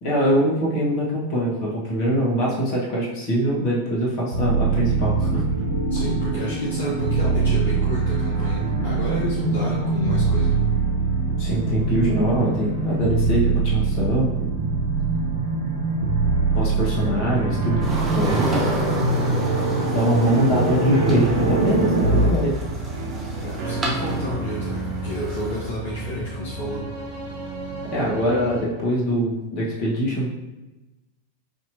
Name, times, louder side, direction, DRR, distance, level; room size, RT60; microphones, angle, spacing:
voice 1, 0.0-5.4 11.4-14.3 16.5-17.9 18.1-18.6 19.9-22.5 27.9-30.3, equal, 40° left, -5 dB, 1.3 m, -23 dB
sound 1, 4.3-22.3, right 3 dB, 75° right, 0.7 m, -23 dB
voice 2, 5.9-10.7 23.3-26.8, equal, 60° left, -7 dB, 1.0 m, -30 dB
sound 2, 17.6-28.6, right 2 dB, 50° right, 0.8 m, -31 dB
sound 3, 17.8-25.7, right 1 dB, 20° right, 0.9 m, -32 dB
4.9 x 2.9 x 2.8 m, 1.1 s
figure-of-eight pair, 90°, 0 cm